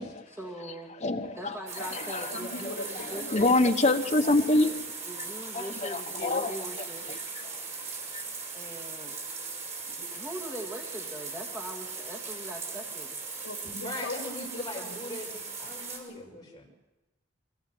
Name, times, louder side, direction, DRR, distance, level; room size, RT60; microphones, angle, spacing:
voice 1, 0.4-0.9 1.4-3.5 5.1-7.1 8.5-9.2 10.1-13.1, right 1 dB, 15° right, -3 dB, 2.2 m, -41 dB
voice 2, 1.0-2.4 2.6-4.9 5.5-6.5 7.1-7.6 8.1-8.2, left 2 dB, 35° left, 6 dB, 1.2 m, -27 dB
sound 1, 1.7-16.0, right 4 dB, 40° right, 6.2 m, -39 dB
voice 3, 2.3-3.7 6.1-6.4 9.9-10.1 13.4-15.0 16.1-16.7, left 2 dB, 70° left, 3 dB, 3.1 m, -41 dB
voice 4, 13.6-16.6, left 1 dB, 20° left, -1 dB, 5.7 m, -40 dB
24.0 x 18.0 x 8.0 m, 1.1 s
head